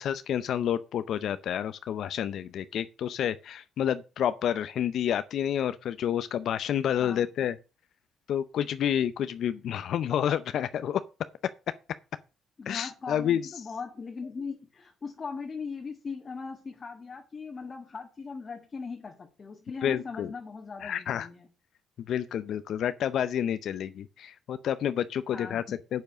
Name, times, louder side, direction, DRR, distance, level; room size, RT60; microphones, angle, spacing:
voice 1, 0.0-7.6 8.3-11.0 12.7-13.4 19.8-20.3 20.8-21.3 22.1-26.0, left 9 dB, 70° left, 0.6 m, -29 dB
voice 2, 12.6-21.5 25.3-25.8, left 5 dB, 35° left, 1.6 m, -39 dB
8.1 x 6.9 x 6.3 m
cardioid pair, 90°, 0 cm